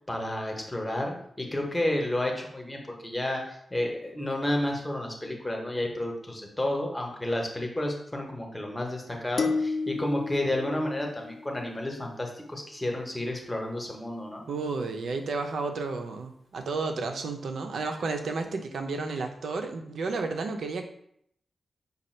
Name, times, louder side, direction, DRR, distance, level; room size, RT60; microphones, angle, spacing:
voice 1, 0.1-14.4, left 1 dB, 10° left, 1 dB, 0.7 m, -31 dB
sound 1, 9.4-11.8, left 4 dB, 40° left, 0.3 m, -32 dB
voice 2, 14.5-20.9, right 3 dB, 75° right, 5 dB, 0.5 m, -32 dB
5.3 x 2.3 x 4.3 m, 0.71 s
wide cardioid pair, 175°, 0 cm